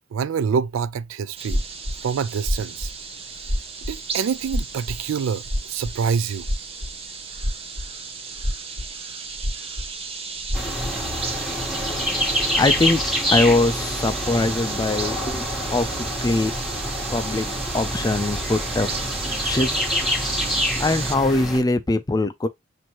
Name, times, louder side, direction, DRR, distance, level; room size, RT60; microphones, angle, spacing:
voice 1, 0.1-1.6 2.0-2.9 3.9-5.4 5.7-6.5, right 6 dB, 80° right, 0.3 m, -26 dB
sound 1, 1.4-21.2, right 5 dB, 30° right, 0.7 m, -34 dB
sound 2, 1.5-2.0 2.4-3.0 3.4-4.0 4.5-5.1 5.4-6.1 6.4-7.0 7.4-7.9 8.4-9.0 9.4-9.9 10.4-10.9, equal, 60° right, 1.5 m, -26 dB
sound 3, 10.5-21.6, left 1 dB, ahead, 1.2 m, -26 dB
voice 2, 12.6-13.0 13.3-16.5 17.1-17.5 17.7-19.1 19.4-19.7 20.8-22.5, left 2 dB, 20° left, 0.4 m, -22 dB
6.1 x 2.7 x 2.9 m
head